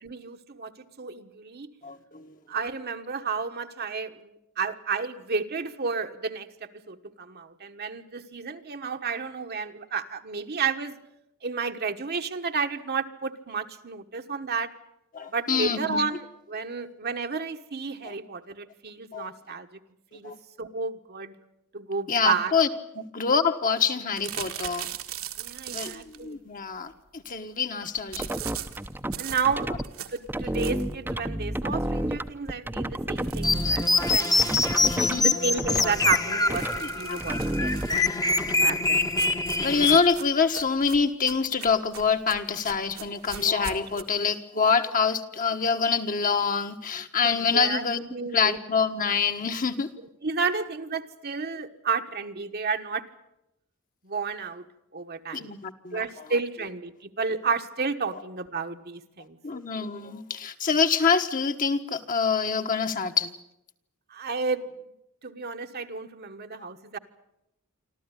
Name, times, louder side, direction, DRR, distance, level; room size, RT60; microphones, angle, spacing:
voice 1, 0.0-1.7 2.5-6.5 6.9-11.0 11.4-14.7 15.3-16.2 16.5-19.8 20.1-20.3 20.6-21.3 21.7-22.5 25.4-26.4 29.1-34.4 34.9-38.0 38.6-39.1 47.2-47.8 48.1-48.6 50.2-53.0 54.0-54.6 54.9-55.5 55.9-59.4 64.1-64.7 65.2-67.0, right 5 dB, 45° right, 6 dB, 1.3 m, -31 dB
voice 2, 1.8-2.3 15.1-16.0 18.0-18.1 19.1-19.3 20.2-20.3 22.1-22.7 22.9-24.9 25.7-28.3 34.8-35.3 36.8-37.4 39.6-48.1 48.3-49.9 55.3-56.3 58.1-58.2 59.4-63.3, left 5 dB, 40° left, 6 dB, 1.4 m, -26 dB
sound 1, 24.2-26.2 28.1-31.0 31.5-31.6 31.9-32.0 32.3-32.4 33.1-35.6 36.4-38.2 39.0-44.0, right 10 dB, 70° right, 1.8 m, -40 dB
sound 2, 28.0-29.8 30.3-35.2 35.6-36.2 36.5-36.8 37.2-38.5, right 1 dB, 10° right, 0.8 m, -30 dB
sound 3, 33.4-40.0, left 3 dB, 15° left, 1.1 m, -24 dB
25.5 x 14.0 x 9.9 m, 0.86 s
head